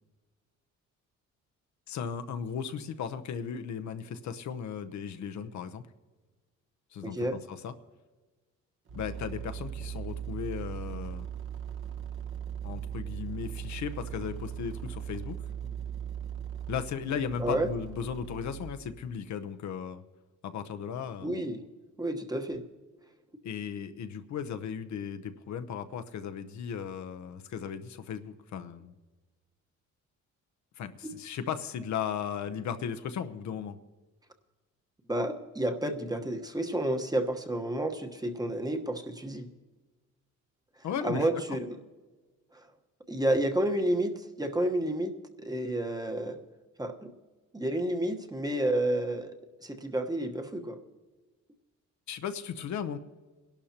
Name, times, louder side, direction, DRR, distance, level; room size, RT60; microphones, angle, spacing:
voice 1, 1.9-5.8 6.9-7.7 8.9-11.3 12.6-15.5 16.7-20.0 20.4-21.4 23.4-28.9 30.8-33.8 40.8-41.3 52.1-53.0, left 7 dB, 65° left, 8 dB, 0.9 m, -36 dB
voice 2, 7.0-7.4 17.4-17.7 21.2-21.6 22.0-22.6 35.1-39.5 41.0-41.8 43.1-45.1 45.4-46.4 46.8-47.1 47.5-49.3 49.6-50.8, right 1 dB, 15° right, 4 dB, 1.2 m, -30 dB
sound 1, 8.9-18.7, right 9 dB, 40° right, 1.1 m, -39 dB
22.5 x 12.0 x 2.9 m, 1.3 s
cardioid pair, 90°, 30 cm